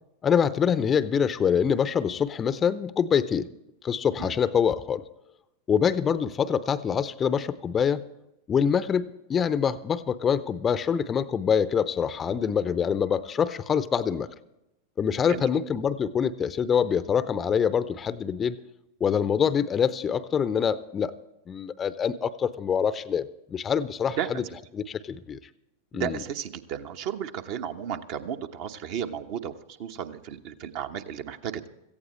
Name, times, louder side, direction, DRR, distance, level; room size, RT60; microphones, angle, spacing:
voice 1, 0.2-3.5 3.8-5.0 5.7-8.1 8.5-14.3 15.0-18.6 19.0-21.1 21.5-24.4 24.7-25.4 25.9-26.2, left 7 dB, 20° left, 16 dB, 0.6 m, -25 dB
voice 2, 25.9-29.5 29.8-31.7, right 9 dB, 45° right, 7 dB, 1.1 m, -33 dB
17.5 x 15.0 x 3.2 m, 0.89 s
figure-of-eight pair, 90°, 0 cm